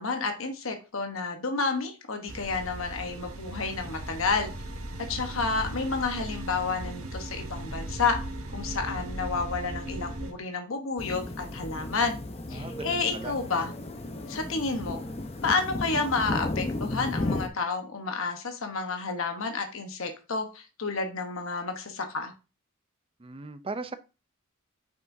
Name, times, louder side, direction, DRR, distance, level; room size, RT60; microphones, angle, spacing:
voice 1, 0.0-4.5 5.1-8.2 8.5-12.2 12.5-13.7 14.3-15.0 15.4-22.3, left 4 dB, 65° left, 1.1 m, -30 dB
sound 1, 2.3-10.3, right 1 dB, 75° right, 1.3 m, -37 dB
sound 2, 11.0-17.5, left 2 dB, 30° left, 0.8 m, -34 dB
voice 2, 12.5-13.4 23.2-23.9, right 3 dB, 25° right, 0.5 m, -38 dB
7.6 x 5.9 x 2.7 m
head